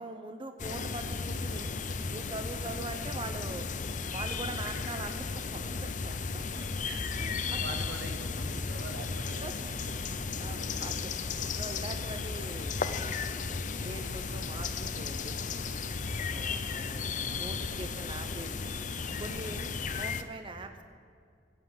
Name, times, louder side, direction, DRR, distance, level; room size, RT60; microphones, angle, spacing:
voice 1, 0.0-1.7 2.1-3.7 4.1-6.2 7.2-7.8 9.4-9.6 10.4-11.1 11.6-13.4 13.8-15.6 16.3-18.8 19.2-20.8, right 2 dB, 30° right, 7 dB, 0.7 m, -42 dB
sound 1, 0.6-20.2, left 4 dB, 45° left, 0.7 m, -35 dB
voice 2, 1.8-2.2 6.0-7.0 7.6-9.6 14.5-14.7, right 2 dB, 85° right, 5 dB, 1.5 m, -45 dB
15.0 x 8.7 x 7.6 m, 2.3 s
head